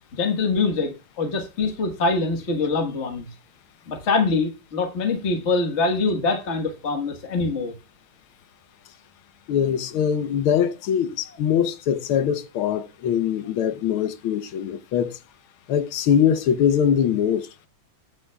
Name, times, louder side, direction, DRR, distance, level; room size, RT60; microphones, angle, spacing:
voice 1, 0.1-3.3 3.9-7.7, left 3 dB, 35° left, 1.5 m, -24 dB
voice 2, 9.5-15.2 15.7-17.5, left 8 dB, 90° left, 1.7 m, -22 dB
20.0 x 7.9 x 2.3 m
omnidirectional pair, 2.2 m